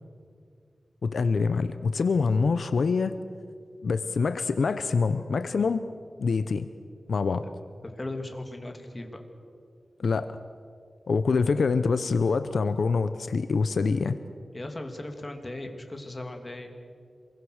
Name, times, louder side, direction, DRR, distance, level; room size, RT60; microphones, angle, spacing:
voice 1, 1.0-3.2 3.8-5.8 6.2-6.7 7.1-7.4 10.0-10.3 11.1-14.2, left 4 dB, 80° left, 11 dB, 0.7 m, -25 dB
voice 2, 7.8-9.2 14.5-16.7, left 2 dB, 30° left, 5 dB, 2.8 m, -37 dB
27.0 x 22.5 x 6.5 m, 2.3 s
wide cardioid pair, 85°, 0 cm